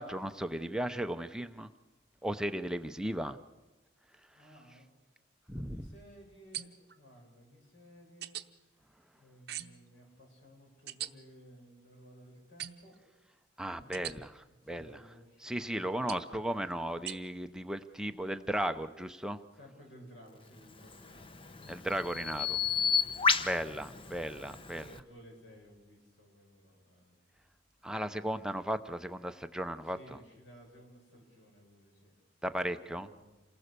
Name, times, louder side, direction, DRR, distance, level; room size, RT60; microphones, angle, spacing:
voice 1, 0.0-1.7 2.2-3.4 5.5-5.8 13.6-14.9 15.4-19.4 21.7-22.6 23.4-24.9 27.8-30.0 32.4-33.1, right 1 dB, 5° right, 8 dB, 0.7 m, -35 dB
voice 2, 4.3-4.9 5.5-8.4 9.1-13.0 13.6-16.6 19.5-23.8 24.7-27.3 29.8-32.2 32.9-33.3, equal, 75° left, 0 dB, 7.9 m, -57 dB
sound 1, 6.5-7.0 8.2-8.5 9.5-9.9 10.9-11.1 12.6-13.0 13.9-14.2 16.1-16.3 17.1-17.2, right 12 dB, 55° right, 0.8 m, -41 dB
Bird vocalization bird call bird song, 20.8-25.0, left 5 dB, 30° left, 0.9 m, -32 dB
28.0 x 19.0 x 6.8 m, 1.1 s
head